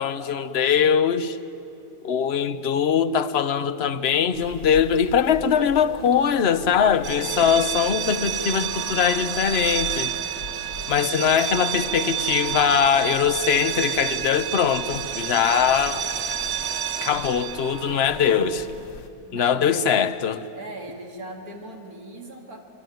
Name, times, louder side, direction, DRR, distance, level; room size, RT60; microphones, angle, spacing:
voice 1, 0.0-1.4 2.0-10.1 10.9-16.1 17.0-18.7 19.3-20.4, left 7 dB, 50° left, 1.1 m, -21 dB
sound 1, 4.3-19.1, left 5 dB, 80° left, 1.8 m, -42 dB
sound 2, 7.0-18.7, right 10 dB, 55° right, 1.1 m, -29 dB
voice 2, 19.3-19.8 20.5-22.6, right 2 dB, 80° right, 2.8 m, -39 dB
26.5 x 24.0 x 9.3 m
omnidirectional pair, 1.6 m